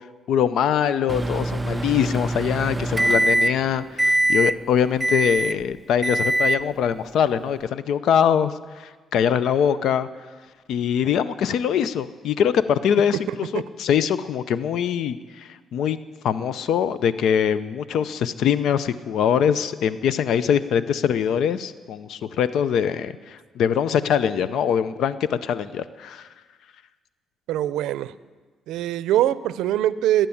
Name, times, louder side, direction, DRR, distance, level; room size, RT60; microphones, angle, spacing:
voice 1, 0.3-10.1 10.7-16.0 16.2-26.3, left 8 dB, 75° left, 15 dB, 0.6 m, -23 dB
Microwave oven, 1.1-3.7 4.0-4.5 5.0-5.6 6.0-6.6, right 1 dB, 15° right, 0.4 m, -22 dB
voice 2, 27.5-28.1 28.7-30.3, right 12 dB, 90° right, 17 dB, 0.5 m, -22 dB
20.5 x 9.0 x 7.1 m, 1.4 s
cardioid pair, 90°, 0 cm